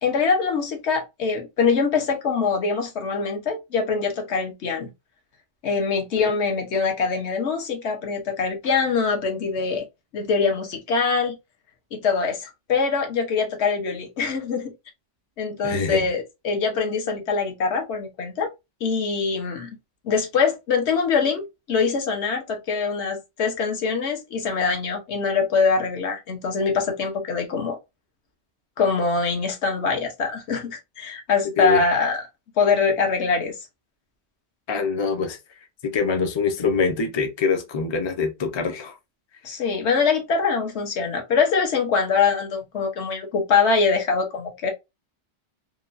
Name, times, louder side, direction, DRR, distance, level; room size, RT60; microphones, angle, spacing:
voice 1, 0.0-4.9 5.6-9.9 10.1-11.3 11.9-14.7 15.4-18.5 18.8-19.7 20.0-27.8 28.8-32.2 32.6-33.6 39.4-44.7, left 5 dB, 70° left, 1.0 m, -23 dB
voice 2, 15.6-16.1 31.6-31.8 34.7-35.4 35.8-38.9, left 5 dB, 40° left, 0.4 m, -24 dB
2.9 x 2.2 x 2.4 m
omnidirectional pair, 1.2 m